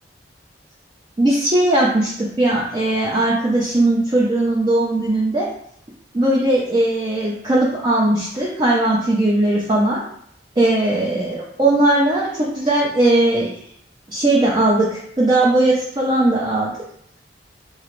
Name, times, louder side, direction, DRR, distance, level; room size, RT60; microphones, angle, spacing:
voice 1, 1.2-5.5 6.1-10.0 10.6-13.6 14.1-16.7, right 1 dB, 25° right, -4 dB, 0.4 m, -18 dB
3.0 x 2.5 x 3.0 m, 0.67 s
head